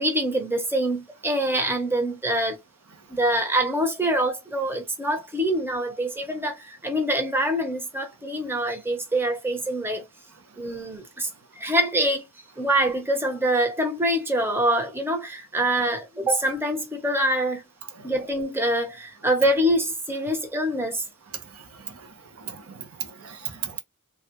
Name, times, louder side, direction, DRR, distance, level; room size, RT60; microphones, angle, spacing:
voice 1, 0.0-2.6 3.1-10.0 10.6-11.3 11.6-12.3 12.6-17.6 18.0-21.0, right 1 dB, 10° right, 0.7 m, -25 dB
voice 2, 22.4-23.8, right 8 dB, 70° right, 0.7 m, -36 dB
3.4 x 2.2 x 2.9 m
head